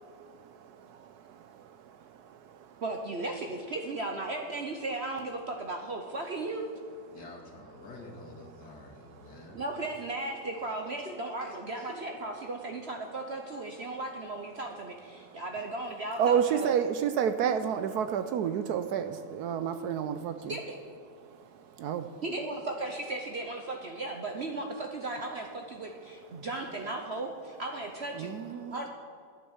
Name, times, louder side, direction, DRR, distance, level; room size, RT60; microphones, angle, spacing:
voice 1, 0.0-2.8 7.1-7.2 8.6-9.6 15.1-15.4 16.2-20.6 21.2-22.2 26.3-26.5 28.1-28.8, right 8 dB, 70° right, 1.0 m, -32 dB
voice 2, 2.8-6.7 9.5-16.7 20.5-20.8 22.2-28.4 28.7-28.9, right 2 dB, 50° right, 0.9 m, -36 dB
voice 3, 7.1-9.7 11.4-11.9 15.5-15.6, left 2 dB, 65° left, 2.4 m, -48 dB
11.0 x 9.4 x 7.1 m
omnidirectional pair, 1.9 m